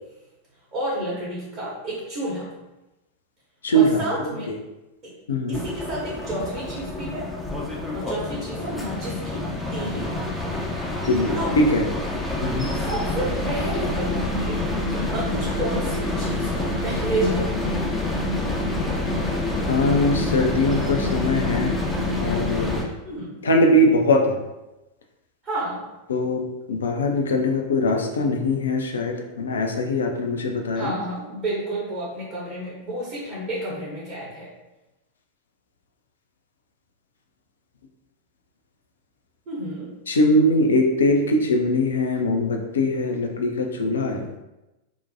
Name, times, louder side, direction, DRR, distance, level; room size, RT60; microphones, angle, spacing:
voice 1, 0.7-2.5 3.7-4.5 5.0-5.1 5.5-7.3 7.9-9.4 9.7-10.1 11.4-11.6 12.7-14.6 14.9-17.9 23.0-23.4 25.4-25.8 30.7-34.5 39.5-39.9, right 1 dB, 35° right, -8 dB, 0.9 m, -30 dB
voice 2, 3.6-4.3 5.3-5.6 11.0-11.8 12.4-12.7 19.7-21.8 22.2-22.8 23.4-24.4 26.1-26.4 26.7-30.9 40.1-44.3, left 1 dB, 70° left, 3 dB, 0.4 m, -21 dB
sound 1, 5.5-22.9, left 2 dB, 5° left, 0.4 m, -27 dB
2.6 x 2.1 x 2.7 m, 1.0 s
figure-of-eight pair, 90°, 0 cm